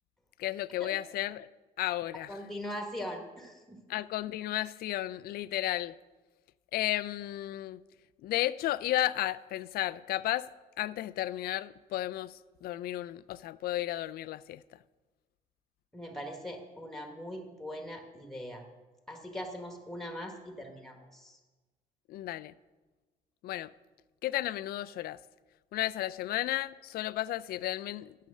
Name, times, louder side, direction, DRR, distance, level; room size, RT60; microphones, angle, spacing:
voice 1, 0.4-1.5 1.8-2.4 3.9-5.9 6.7-7.8 8.2-10.5 10.8-14.6 22.1-22.5 23.4-23.7 24.2-25.2 25.7-28.2, left 14 dB, 65° left, 0.4 m, -33 dB
voice 2, 2.3-3.8 15.9-18.6 19.1-21.4, equal, ahead, 1.5 m, -41 dB
9.2 x 6.7 x 6.4 m
cardioid pair, 110°, 17 cm